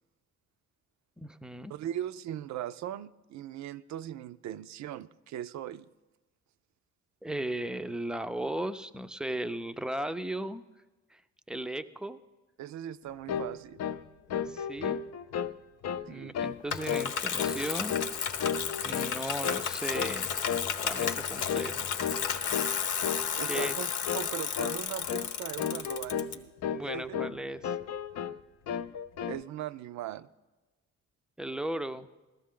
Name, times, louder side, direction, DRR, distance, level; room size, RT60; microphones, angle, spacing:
voice 1, 1.2-1.7 7.2-10.6 11.1-11.2 11.5-12.2 14.3-15.0 16.1-18.0 18.8-20.4 20.8-21.9 23.4-23.8 26.7-27.7 31.4-32.1, right 1 dB, 5° right, 0.4 m, -36 dB
voice 2, 1.7-5.9 12.6-13.8 16.1-16.4 23.3-26.5 26.9-27.3 29.3-30.3, right 11 dB, 65° right, 0.5 m, -39 dB
sound 1, 13.3-13.5 13.8-14.0 14.3-15.5 15.8-16.1 16.3-16.6 16.9-17.1 17.4-18.1 18.4-19.2 19.4-19.7 19.9-20.2 20.5-20.7 21.0-21.2 21.5-21.7 22.0-22.2 22.5-22.7 23.0-23.3 23.5-23.7 24.1-24.3 24.6-24.8 25.1-25.3 25.6-26.3 26.6-27.4 27.6-28.4 28.7-29.4, left 8 dB, 60° left, 0.5 m, -33 dB
Bicycle, 16.7-26.3, left 7 dB, 90° left, 0.8 m, -33 dB
15.0 x 13.0 x 3.7 m
cardioid pair, 90°, 30 cm